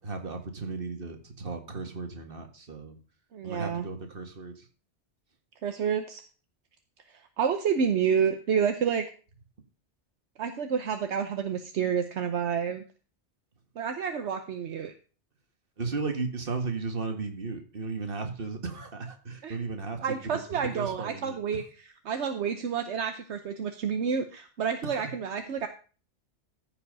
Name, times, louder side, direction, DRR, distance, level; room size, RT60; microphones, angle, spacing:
voice 1, 0.0-3.0 3.4-4.7 15.8-21.4 24.8-25.1, right 4 dB, 50° right, 5 dB, 1.9 m, -35 dB
voice 2, 3.3-3.9 5.6-6.2 7.4-9.1 10.4-12.8 13.8-14.9 19.4-19.6 20.0-21.6 22.0-25.7, right 7 dB, 75° right, 7 dB, 1.1 m, -29 dB
14.0 x 5.7 x 5.3 m, 0.37 s
omnidirectional pair, 1.2 m